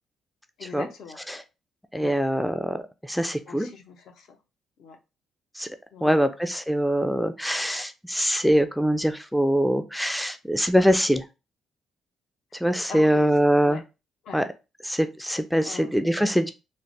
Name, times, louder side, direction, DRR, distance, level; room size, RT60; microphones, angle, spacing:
voice 1, 0.6-1.2 2.0-2.2 3.5-4.4 4.8-5.0 5.9-6.3 12.9-13.8 14.2-14.4 15.6-15.9, left 6 dB, 75° left, 5 dB, 0.6 m, -41 dB
voice 2, 1.9-2.8 3.0-3.7 5.6-5.7 6.0-11.2 12.6-13.8 14.3-14.5 14.8-16.5, equal, ahead, 8 dB, 0.3 m, -23 dB
3.2 x 2.1 x 2.6 m, 0.28 s
cardioid pair, 90°, 0 cm